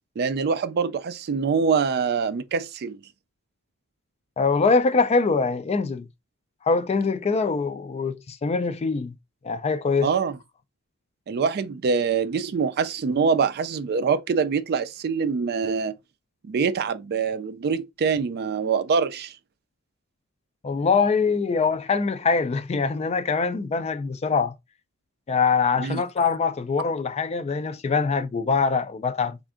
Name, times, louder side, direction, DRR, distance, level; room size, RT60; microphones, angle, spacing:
voice 1, 0.2-3.0 10.0-10.3 11.3-15.9 16.4-19.4 25.8-26.0, right 5 dB, 45° right, 0.3 m, -24 dB
voice 2, 4.4-6.1 6.6-9.1 9.4-10.1 20.6-24.5 25.3-29.4, left 4 dB, 30° left, 0.3 m, -23 dB
3.4 x 2.5 x 3.6 m
head